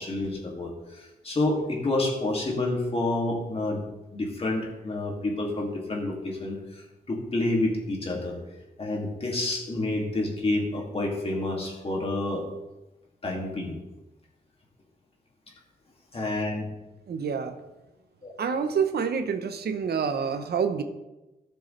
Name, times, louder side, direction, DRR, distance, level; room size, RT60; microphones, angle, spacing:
voice 1, 0.0-3.8 4.1-8.3 8.8-12.5 13.2-13.8 16.1-16.6 18.2-18.3, left 2 dB, 35° left, -1 dB, 2.4 m, -29 dB
voice 2, 17.1-17.6 18.4-20.8, right 6 dB, 90° right, 8 dB, 0.9 m, -27 dB
17.0 x 6.9 x 3.3 m, 1.0 s
wide cardioid pair, 160°, 16 cm